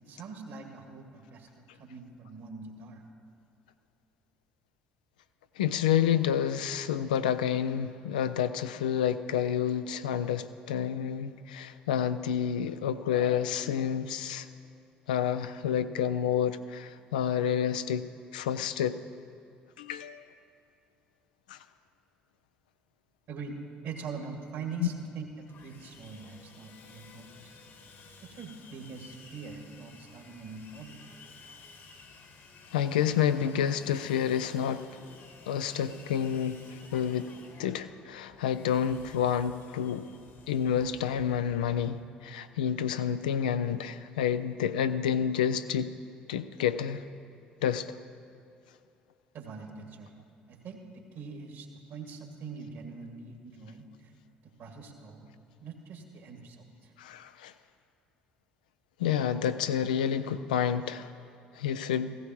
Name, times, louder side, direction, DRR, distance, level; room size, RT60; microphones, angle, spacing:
voice 1, 0.0-3.0 23.3-23.6 23.8-27.5 28.2-31.0 49.3-50.2 50.5-50.8 51.1-54.1 54.4-55.3 55.6-56.9, right 5 dB, 60° right, 1 dB, 1.9 m, -43 dB
voice 2, 5.6-14.5 15.1-19.0 19.8-20.3 21.5-21.6 24.8-24.9 32.7-35.0 35.5-40.1 40.5-45.9 46.3-47.0 47.6-48.0 57.0-57.5 59.0-61.1 61.6-62.1, left 9 dB, 80° left, 11 dB, 0.4 m, -29 dB
Sawing, 25.5-41.9, left 4 dB, 60° left, 1.6 m, -53 dB
15.5 x 15.0 x 3.0 m, 2.5 s
hypercardioid pair, 55°, 5 cm